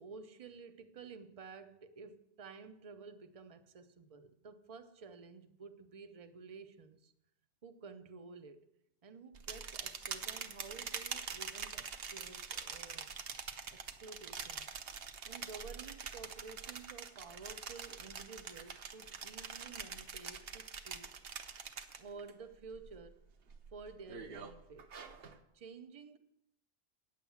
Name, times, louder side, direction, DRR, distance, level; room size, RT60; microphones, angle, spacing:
voice 1, 0.0-7.1 7.6-8.7 9.0-13.1 13.7-14.8 15.2-21.1 22.0-23.2 23.7-24.9 25.5-26.2, right 5 dB, 35° right, 0.7 m, -52 dB
sound 1, 9.3-22.3 22.7-23.1 23.5-25.4, right 6 dB, 60° right, 1.0 m, -45 dB
9.4 x 7.6 x 7.1 m
omnidirectional pair, 1.2 m